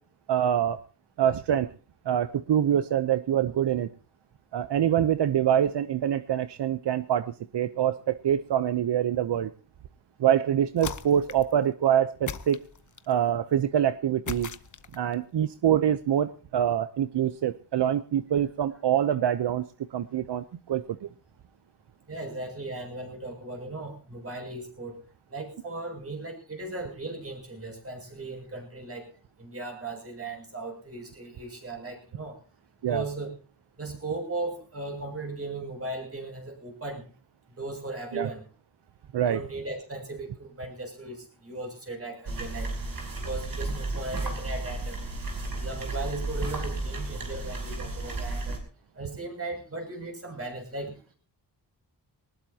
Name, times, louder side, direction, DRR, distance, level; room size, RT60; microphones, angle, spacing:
voice 1, 0.3-0.8 1.2-1.7 2.1-3.9 4.5-9.5 10.2-12.6 13.1-14.5 14.9-21.1 32.8-33.0 38.1-38.3 39.1-39.4, right 10 dB, 80° right, 13 dB, 0.8 m, -25 dB
sound 1, 10.8-11.6 12.3-13.2 14.3-15.1, left 6 dB, 45° left, 1.0 m, -38 dB
voice 2, 22.1-25.0 25.3-29.1 29.4-32.4 32.9-33.3 33.8-37.0 37.5-38.5 39.2-42.7 43.1-45.0 45.5-48.6 48.9-51.1, right 2 dB, 35° right, 3 dB, 6.8 m, -37 dB
sound 2, 42.3-48.6, right 2 dB, 55° right, 5.9 m, -33 dB
20.0 x 19.5 x 2.9 m, 0.37 s
wide cardioid pair, 100°, 41 cm